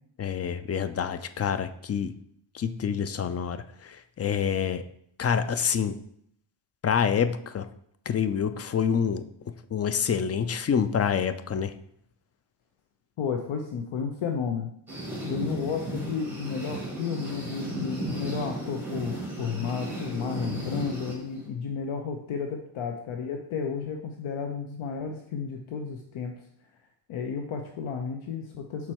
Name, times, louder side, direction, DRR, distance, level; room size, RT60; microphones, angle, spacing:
voice 1, 0.2-2.1 2.5-4.8 5.2-6.0 6.8-7.7 8.1-9.2 9.7-11.7, left 7 dB, 35° left, 11 dB, 0.4 m, -27 dB
voice 2, 13.2-14.7 15.2-26.3 27.1-28.9, left 6 dB, 75° left, 4 dB, 0.8 m, -32 dB
sound 1, 14.9-21.5, right 1 dB, 5° right, 1.9 m, -35 dB
5.9 x 4.4 x 4.4 m, 0.70 s
cardioid pair, 100°, 49 cm